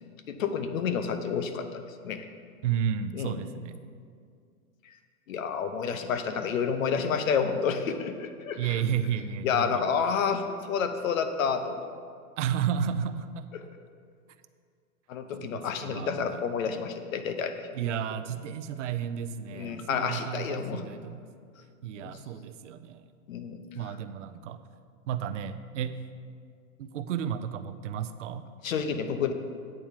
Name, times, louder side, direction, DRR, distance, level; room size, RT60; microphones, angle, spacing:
voice 1, 0.3-1.7 2.0-2.2 3.1-3.4 5.3-8.8 9.4-11.8 15.1-17.7 19.5-20.8 23.3-23.6 28.6-29.3, left 6 dB, 60° left, 8 dB, 0.9 m, -29 dB
voice 2, 2.6-3.8 8.6-9.9 12.4-13.5 15.4-16.3 17.7-21.2 21.8-23.0 23.7-24.6 25.1-26.0 26.8-28.5, right 8 dB, 55° right, 10 dB, 0.5 m, -32 dB
8.9 x 4.6 x 7.3 m, 2.2 s
hypercardioid pair, 170°, 45 cm